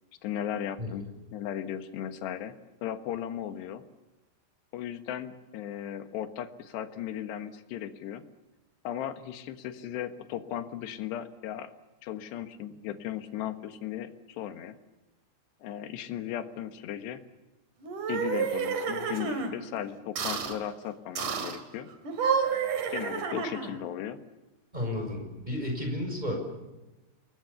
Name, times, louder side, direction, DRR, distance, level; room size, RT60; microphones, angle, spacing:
voice 1, 0.2-1.1 1.3-3.8 4.7-8.2 8.9-11.7 12.0-14.1 14.4-14.8 15.6-17.2 18.1-21.9 22.9-24.2, left 10 dB, 75° left, 10 dB, 3.6 m, -36 dB
sound 1, 17.8-19.5 20.2-20.6 21.2-21.6 22.0-23.8, right 6 dB, 50° right, 3.6 m, -30 dB
voice 2, 24.7-26.4, left 1 dB, 10° right, 2 dB, 6.6 m, -32 dB
28.0 x 21.0 x 7.1 m, 1.1 s
omnidirectional pair, 5.0 m